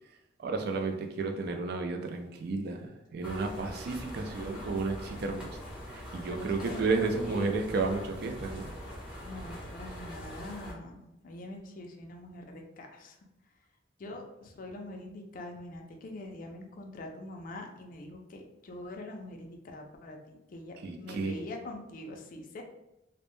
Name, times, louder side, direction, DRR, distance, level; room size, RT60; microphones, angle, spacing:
voice 1, 0.4-5.5 5.9-8.7 20.8-21.4, right 3 dB, 55° right, 4 dB, 0.3 m, -32 dB
sound 1, 3.2-10.7, equal, 5° right, 0.6 m, -43 dB
voice 2, 4.1-5.0 6.3-6.9 7.2-7.5 9.2-13.2 14.0-22.6, left 1 dB, 45° left, 3 dB, 0.3 m, -44 dB
2.1 x 2.0 x 3.0 m, 0.91 s
head